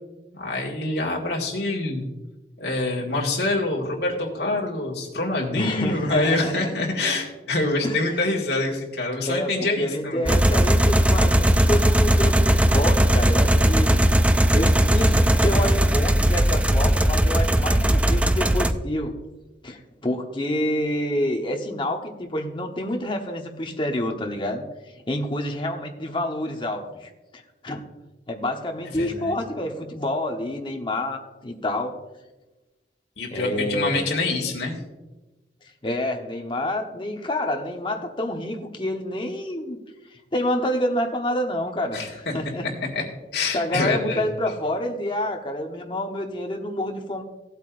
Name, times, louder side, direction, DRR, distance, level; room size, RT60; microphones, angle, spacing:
voice 1, 0.3-2.1 2.6-10.3 28.9-29.3 33.2-34.8 41.9-42.1 42.4-42.5 42.9-43.0 43.3-44.3, left 2 dB, 65° left, -2 dB, 1.9 m, -26 dB
voice 2, 5.6-6.7 7.8-8.0 9.3-14.0 14.5-19.1 19.6-24.6 25.1-27.8 28.3-32.0 33.3-34.1 35.8-39.8 40.1-42.7 43.5-47.2, left 1 dB, 30° left, 3 dB, 1.0 m, -28 dB
sound 1, 10.3-18.7, right 1 dB, 5° right, 0.3 m, -18 dB
16.0 x 8.1 x 2.5 m, 1.1 s
head